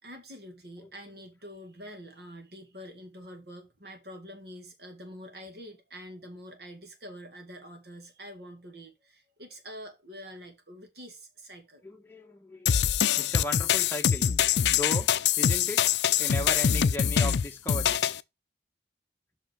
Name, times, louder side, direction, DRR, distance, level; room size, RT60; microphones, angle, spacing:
voice 1, 0.0-11.8, equal, 60° right, 2.1 m, -46 dB
voice 2, 0.8-1.2 11.8-12.8 13.2-14.3 14.7-15.1 15.4-15.9 16.2-18.0, left 1 dB, 10° left, 1.3 m, -36 dB
sound 1, 12.7-18.2, left 8 dB, 70° left, 0.5 m, -24 dB
5.9 x 5.4 x 6.4 m
head